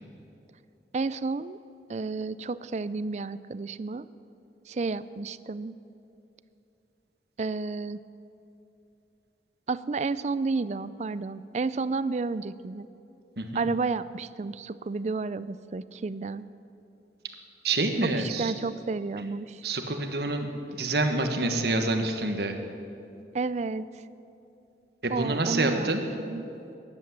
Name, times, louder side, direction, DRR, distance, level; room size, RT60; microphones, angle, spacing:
voice 1, 0.9-1.6 1.9-4.1 4.7-5.7 7.4-8.0 9.7-12.9 13.5-16.5 18.1-19.6 23.3-24.0 25.1-25.9 26.2-26.4, right 4 dB, 40° right, 16 dB, 0.4 m, -31 dB
voice 2, 13.4-13.7 17.6-18.5 19.6-20.5 20.8-22.6 25.0-26.0, right 2 dB, 65° right, 5 dB, 1.4 m, -27 dB
14.0 x 10.5 x 8.7 m, 2.7 s
head